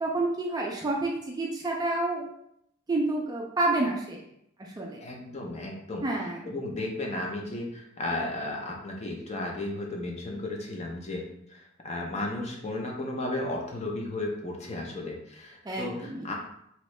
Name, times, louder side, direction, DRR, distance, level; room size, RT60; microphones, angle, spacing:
voice 1, 0.0-2.3 2.9-4.2 4.6-5.0 6.0-6.5 15.6-16.3, right 2 dB, 20° right, -1 dB, 0.3 m, -29 dB
voice 2, 5.0-16.3, left 2 dB, 30° left, 0 dB, 0.5 m, -34 dB
2.9 x 2.7 x 3.1 m, 0.75 s
head